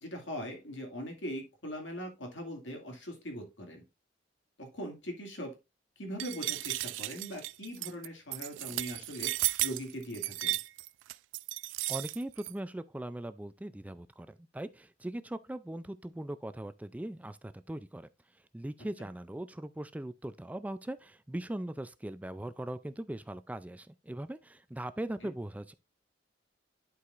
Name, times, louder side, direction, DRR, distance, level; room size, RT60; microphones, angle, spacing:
voice 1, 0.0-3.8 4.6-5.6 6.0-9.3 9.6-10.6 19.0-19.1 25.2-25.3, equal, 90° left, 2.2 m, -41 dB
sound 1, 6.2-12.5, right 18 dB, 90° right, 0.3 m, -34 dB
voice 2, 11.9-18.1 18.5-25.7, right 1 dB, 10° right, 0.3 m, -40 dB
11.5 x 4.7 x 2.5 m
head